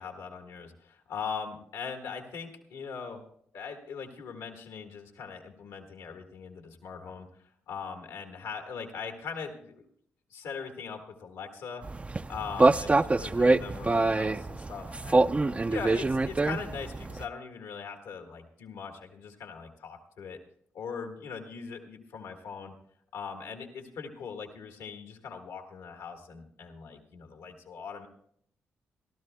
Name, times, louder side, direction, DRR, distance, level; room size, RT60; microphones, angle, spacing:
voice 1, 0.0-3.2 3.5-7.3 7.7-9.8 10.3-11.8 12.3-15.3 15.7-20.4 20.7-22.7 23.1-28.1, left 6 dB, 80° left, 4 dB, 1.5 m, -40 dB
sound 1, 11.8-17.2, right 2 dB, 25° right, 0.4 m, -25 dB
25.5 x 13.0 x 2.2 m, 0.69 s
hypercardioid pair, 40°, 5 cm